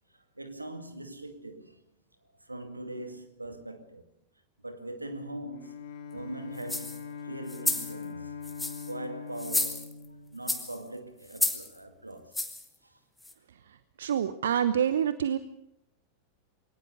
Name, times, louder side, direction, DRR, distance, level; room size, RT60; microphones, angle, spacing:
voice 1, 0.1-1.8 2.4-4.0 4.6-5.8 6.1-8.4 8.9-10.0 10.3-12.4 12.8-13.0, right 1 dB, 85° right, 2.2 m, -41 dB
Bowed string instrument, 5.5-11.2, left 7 dB, 50° left, 3.3 m, -42 dB
sound 1, 6.6-7.0 7.5-7.9 8.4-8.9 9.4-10.1 10.5-10.8 11.3-11.7 12.3-12.7 13.2-13.3, left 2 dB, 5° left, 2.2 m, -31 dB
voice 2, 14.0-15.4, right 9 dB, 65° right, 0.9 m, -26 dB
22.5 x 18.5 x 6.7 m
figure-of-eight pair, 90°, 0 cm